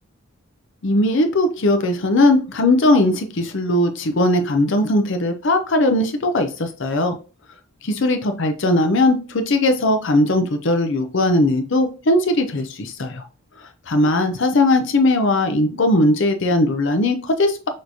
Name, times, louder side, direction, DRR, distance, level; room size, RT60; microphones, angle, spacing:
voice 1, 0.8-7.2 7.8-13.2 13.9-17.6, left 1 dB, 60° left, 7 dB, 0.6 m, -19 dB
6.1 x 3.2 x 2.7 m, 0.34 s
head